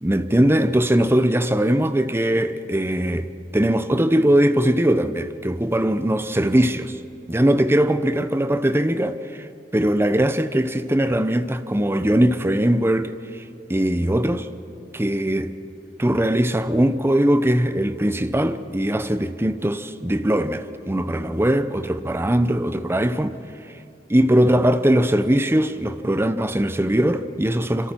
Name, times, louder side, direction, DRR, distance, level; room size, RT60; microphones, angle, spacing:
voice 1, 0.0-7.0 7.3-9.5 9.7-13.2 13.7-14.5 14.9-15.6 16.0-23.4 24.1-27.9, right 1 dB, 15° right, 0.7 m, -20 dB
27.0 x 26.0 x 4.5 m
head